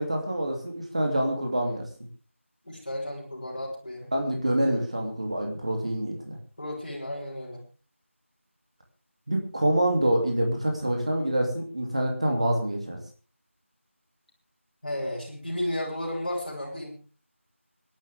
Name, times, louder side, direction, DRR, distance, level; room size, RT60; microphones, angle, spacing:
voice 1, 0.0-1.8 4.1-6.4 9.3-13.0, right 1 dB, 30° right, 2 dB, 2.9 m, -26 dB
voice 2, 2.6-4.1 6.6-7.6 14.8-16.9, left 1 dB, 35° left, -3 dB, 7.8 m, -33 dB
26.0 x 12.0 x 3.6 m, 0.36 s
figure-of-eight pair, 180°, 7 cm